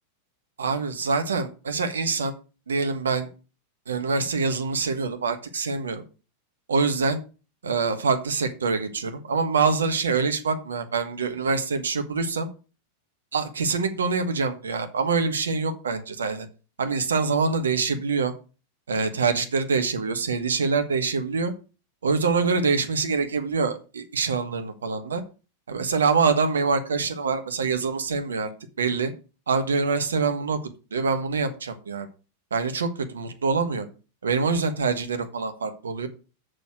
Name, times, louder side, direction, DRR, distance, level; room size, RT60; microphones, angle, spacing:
voice 1, 0.6-2.3 2.7-3.3 3.9-6.0 6.7-7.2 7.6-12.5 13.3-16.5 16.8-18.3 18.9-21.5 22.0-25.2 25.7-28.5 28.8-29.1 29.5-30.6 30.9-32.1 32.5-33.8 34.2-36.1, right 4 dB, 70° right, 8 dB, 1.4 m, -25 dB
6.9 x 6.4 x 6.3 m, 0.34 s
figure-of-eight pair, 90°, 0 cm